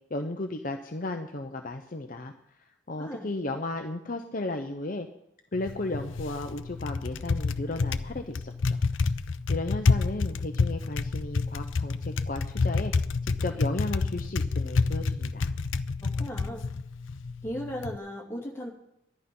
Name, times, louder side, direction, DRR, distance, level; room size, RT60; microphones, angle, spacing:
voice 1, 0.1-5.1 5.5-8.9 9.5-12.9 13.2-15.5, left 2 dB, 45° left, 5 dB, 0.8 m, -35 dB
voice 2, 3.0-3.3 16.0-16.7 17.4-18.7, equal, 10° left, -2 dB, 2.7 m, -36 dB
Typing, 5.5-18.0, left 4 dB, 75° left, 0.6 m, -29 dB
14.0 x 11.0 x 5.4 m, 0.80 s
head